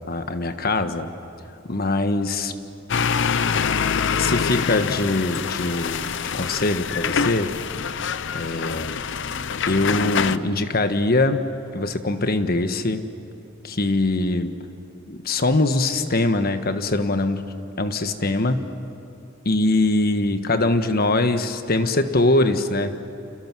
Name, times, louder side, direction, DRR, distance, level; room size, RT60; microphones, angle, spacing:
voice 1, 0.1-1.1 1.7-2.5 4.2-7.6 8.3-9.0 9.7-11.5 11.7-13.0 13.6-14.5 15.1-18.6 19.4-22.9, left 2 dB, 50° left, 8 dB, 1.3 m, -22 dB
sound 1, 2.9-10.4, left 6 dB, 65° left, 0.7 m, -25 dB
29.5 x 28.5 x 6.2 m, 2.8 s
head